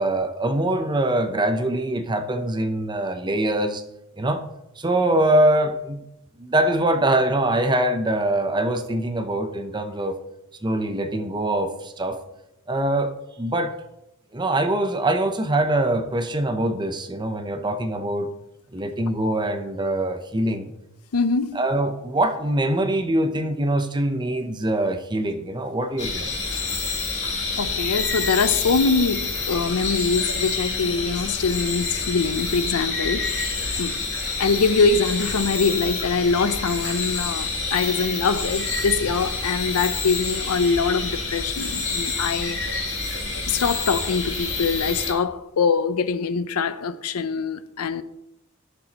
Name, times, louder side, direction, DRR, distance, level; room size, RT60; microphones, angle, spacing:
voice 1, 0.0-3.8 4.2-4.4 4.8-6.0 6.4-10.2 10.6-12.2 12.7-13.8 14.3-18.3 18.7-20.7 21.5-26.3, right 1 dB, 20° right, 0.7 m, -23 dB
voice 2, 21.1-21.6 27.6-33.3 33.8-34.0 34.4-42.6 43.5-48.0, left 4 dB, 85° left, 0.6 m, -23 dB
sound 1, 26.0-45.1, left 3 dB, 55° left, 2.8 m, -28 dB
15.5 x 6.9 x 2.9 m
head